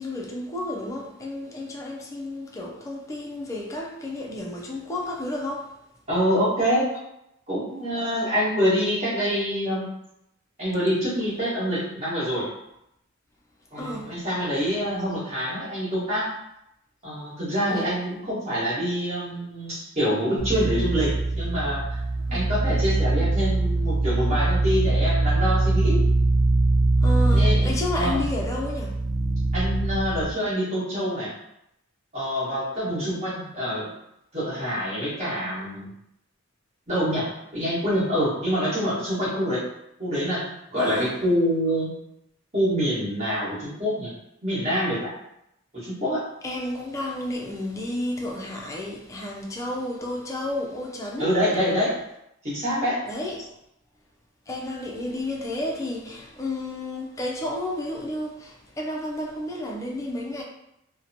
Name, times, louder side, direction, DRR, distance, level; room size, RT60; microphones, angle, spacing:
voice 1, 0.0-5.7 13.8-14.3 17.7-17.9 22.2-22.5 27.0-29.0 40.8-41.1 46.4-51.4 53.1-53.6 54.5-60.4, left 1 dB, 15° left, 0.3 m, -32 dB
voice 2, 6.1-6.9 7.5-9.9 10.6-12.5 13.7-16.3 17.0-22.0 22.3-26.0 27.3-28.2 29.5-31.3 32.1-33.9 34.3-35.9 36.9-37.3 37.5-39.6 40.0-40.4 40.7-41.9 42.5-44.1 44.4-45.1 45.7-46.2 51.2-51.9 52.4-53.0, equal, 30° right, 1.2 m, -26 dB
sound 1, 20.4-30.3, right 2 dB, 85° right, 0.6 m, -23 dB
2.7 x 2.1 x 2.6 m
head